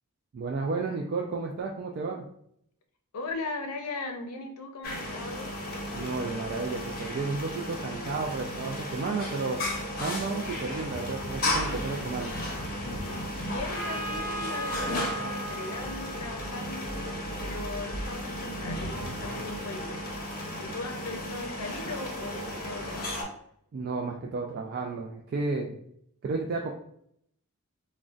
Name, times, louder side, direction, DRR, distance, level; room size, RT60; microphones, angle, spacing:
voice 1, 0.3-2.3 5.9-9.6 10.0-12.3 23.7-25.8 26.2-26.7, right 4 dB, 45° right, 0 dB, 0.3 m, -32 dB
voice 2, 3.1-5.5 13.4-17.1 17.4-20.1 20.6-23.2, left 3 dB, 85° left, 5 dB, 0.5 m, -38 dB
sound 1, 4.8-23.2, left 1 dB, 45° left, 0.7 m, -34 dB
Trumpet, 13.7-17.4, right 1 dB, 10° right, 1.0 m, -38 dB
3.7 x 2.1 x 2.4 m, 0.69 s
head